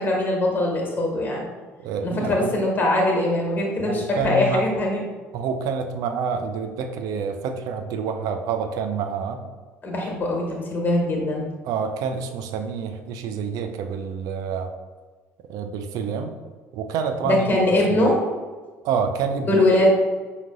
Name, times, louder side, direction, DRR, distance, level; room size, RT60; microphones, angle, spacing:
voice 1, 0.0-1.5 2.0-5.0 9.8-11.5 17.2-18.2 19.5-19.9, left 1 dB, 25° left, -1 dB, 1.3 m, -22 dB
voice 2, 1.8-2.6 3.8-4.6 5.3-9.4 11.6-14.7 15.5-16.3 16.7-18.1 18.8-19.6, right 6 dB, 55° right, 6 dB, 0.4 m, -28 dB
5.9 x 2.8 x 2.4 m, 1.4 s
figure-of-eight pair, 55°, 7 cm